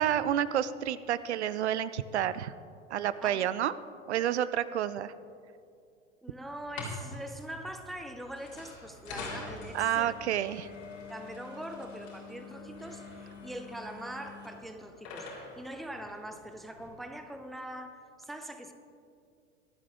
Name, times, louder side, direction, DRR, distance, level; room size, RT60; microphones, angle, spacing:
voice 1, 0.0-2.5 2.9-3.7 4.1-5.1 9.7-10.7, right 10 dB, 65° right, 16 dB, 0.6 m, -29 dB
voice 2, 6.2-10.1 11.1-18.7, right 1 dB, ahead, 7 dB, 0.5 m, -43 dB
sound 1, 6.6-16.9, left 3 dB, 55° left, 3.7 m, -45 dB
25.0 x 8.3 x 3.4 m, 2.4 s
figure-of-eight pair, 85°, 37 cm